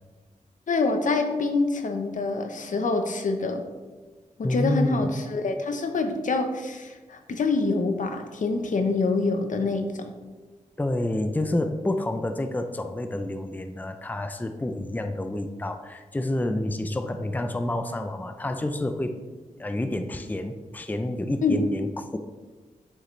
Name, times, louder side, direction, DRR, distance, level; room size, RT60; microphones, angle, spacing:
voice 1, 0.7-3.6 4.4-10.0 21.4-21.6, left 3 dB, 70° left, 6 dB, 0.9 m, -26 dB
voice 2, 4.4-5.1 10.8-19.2 19.6-22.2, left 1 dB, 10° left, 7 dB, 0.5 m, -29 dB
9.6 x 6.5 x 3.2 m, 1.3 s
wide cardioid pair, 85°, 14 cm